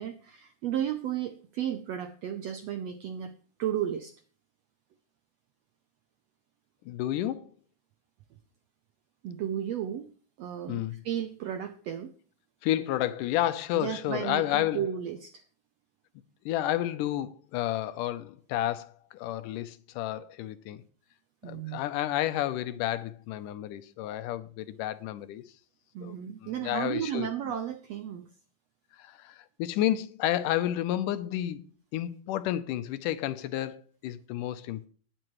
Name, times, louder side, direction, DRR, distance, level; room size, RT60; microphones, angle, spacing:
voice 1, 0.0-3.3 3.6-4.1 9.2-10.1 10.4-12.1 13.7-15.4 21.4-21.8 25.9-28.3, right 10 dB, 80° right, 1.5 m, -33 dB
voice 2, 6.9-7.5 10.7-11.0 12.6-14.9 16.5-20.8 21.4-25.4 26.0-26.2 26.4-27.3 29.0-34.9, left 13 dB, 80° left, 2.2 m, -31 dB
19.0 x 7.8 x 3.1 m
omnidirectional pair, 3.8 m